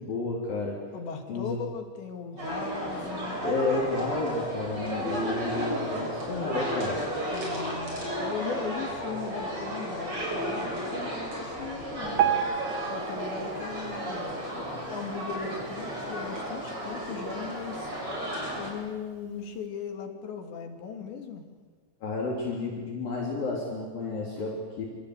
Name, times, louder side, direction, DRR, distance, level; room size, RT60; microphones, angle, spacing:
voice 1, 0.0-0.8 1.3-1.6 3.4-7.0 14.0-14.1 14.6-14.8 22.0-24.9, left 3 dB, 50° left, -3 dB, 5.4 m, -31 dB
voice 2, 0.9-3.4 7.3-12.3 12.9-14.3 14.9-17.9 18.6-21.5, left 6 dB, 70° left, 4 dB, 4.8 m, -38 dB
sound 1, 2.4-18.7, equal, 30° right, 7.5 m, -33 dB
Piano, 12.2-15.3 15.8-16.0 16.3-16.4 17.1-17.2 17.7-17.8, right 9 dB, 60° right, 3.2 m, -31 dB
28.0 x 26.0 x 8.3 m, 1.5 s
omnidirectional pair, 5.3 m